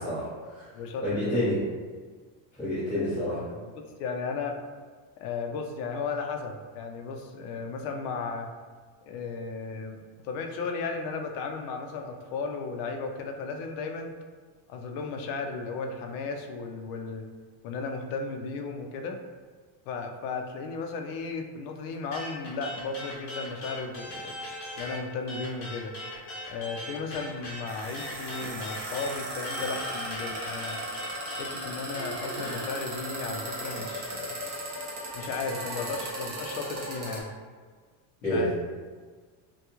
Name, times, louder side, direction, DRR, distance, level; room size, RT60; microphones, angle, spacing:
voice 1, 0.0-0.6 1.0-1.6 2.6-3.4 38.2-38.4, left 1 dB, 5° left, -17 dB, 0.9 m, -28 dB
voice 2, 0.7-1.4 2.9-4.6 5.2-8.5 9.1-14.1 14.7-17.2 17.6-19.2 19.9-24.3 24.8-25.9 26.5-30.8 31.4-34.4 35.1-37.3 38.2-38.5, left 4 dB, 80° left, 4 dB, 0.6 m, -35 dB
sound 1, 22.1-25.0 25.3-32.6, left 1 dB, 35° left, 0.9 m, -39 dB
sound 2, 27.2-37.2, right 1 dB, 25° right, 0.4 m, -36 dB
3.4 x 2.3 x 2.9 m, 1.5 s
cardioid pair, 170°, 49 cm